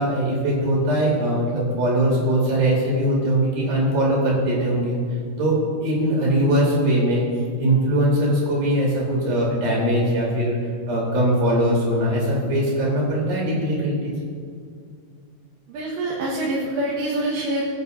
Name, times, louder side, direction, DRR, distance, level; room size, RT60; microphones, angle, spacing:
voice 1, 0.0-5.0 5.4-7.2 7.6-10.6 10.9-14.1, right 1 dB, 55° right, -5 dB, 5.4 m, -21 dB
voice 2, 15.7-17.6, right 1 dB, 75° right, -6 dB, 3.7 m, -25 dB
25.0 x 9.7 x 2.7 m, 2.2 s
omnidirectional pair, 5.2 m